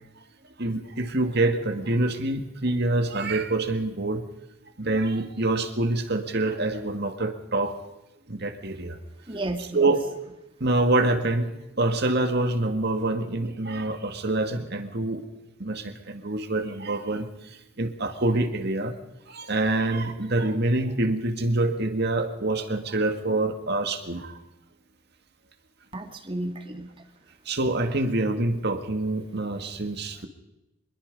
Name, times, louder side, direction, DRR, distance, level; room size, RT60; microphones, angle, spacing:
voice 1, 0.6-4.2 4.8-7.7 8.3-9.0 9.6-10.1 10.6-11.5 11.8-15.2 15.6-17.3 17.8-18.9 19.3-24.4 27.5-30.3, right 2 dB, 50° right, 7 dB, 2.1 m, -26 dB
voice 2, 9.3-9.6 25.9-26.9, right 1 dB, 25° right, 6 dB, 2.0 m, -32 dB
25.0 x 22.0 x 5.4 m, 0.93 s
head